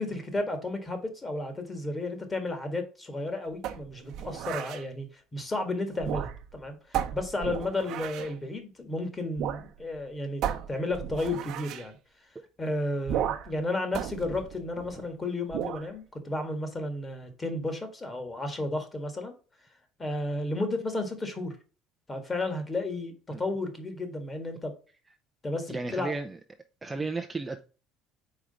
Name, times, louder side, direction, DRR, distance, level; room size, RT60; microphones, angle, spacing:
voice 1, 0.0-10.4 10.7-12.0 12.6-19.3 20.0-21.5 22.1-24.7 25.4-26.1, left 2 dB, 20° left, 1.7 m, -33 dB
sound 1, 3.6-4.8 5.9-6.6 6.9-8.4 9.4-9.7 9.9-10.0 10.4-11.9 13.1-13.6 13.9-15.1 15.5-15.9, right 10 dB, 60° right, 0.8 m, -34 dB
voice 2, 25.7-26.4 26.8-27.6, right 3 dB, 15° right, 0.5 m, -33 dB
4.9 x 4.5 x 5.2 m
cardioid pair, 140°, 0 cm